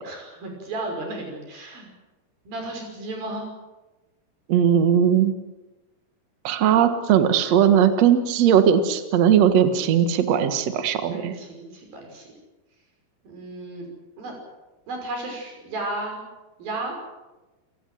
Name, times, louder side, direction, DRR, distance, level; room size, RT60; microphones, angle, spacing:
voice 1, 0.0-1.9 2.5-3.5 11.1-12.3 13.2-13.9 14.2-14.4 14.9-16.2 16.6-17.0, right 2 dB, 50° right, 2 dB, 7.3 m, -33 dB
voice 2, 4.5-5.3 6.4-11.3, right 8 dB, 90° right, 9 dB, 1.4 m, -18 dB
28.5 x 18.5 x 7.7 m, 1.1 s
omnidirectional pair, 5.6 m